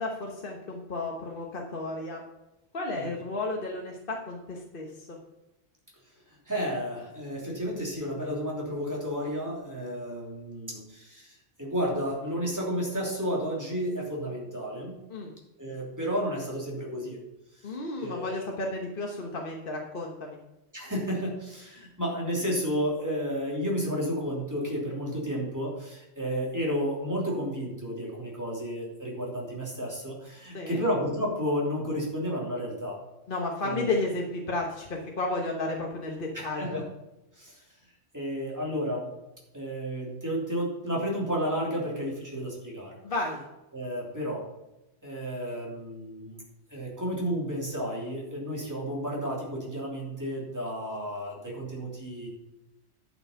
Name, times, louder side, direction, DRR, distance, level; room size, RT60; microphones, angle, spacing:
voice 1, 0.0-2.2 2.7-5.2 15.1-15.3 17.6-20.4 30.5-30.8 33.3-36.8 43.0-43.4, left 2 dB, 45° left, 0 dB, 1.3 m, -33 dB
voice 2, 6.5-15.0 15.6-17.2 18.0-18.5 20.7-33.0 33.6-34.0 36.3-36.9 37.4-37.6 38.1-39.1 39.5-42.9 43.7-44.4 45.0-46.4 46.7-52.3, equal, 15° right, -4 dB, 3.2 m, -32 dB
11.0 x 6.4 x 5.7 m, 0.95 s
omnidirectional pair, 1.3 m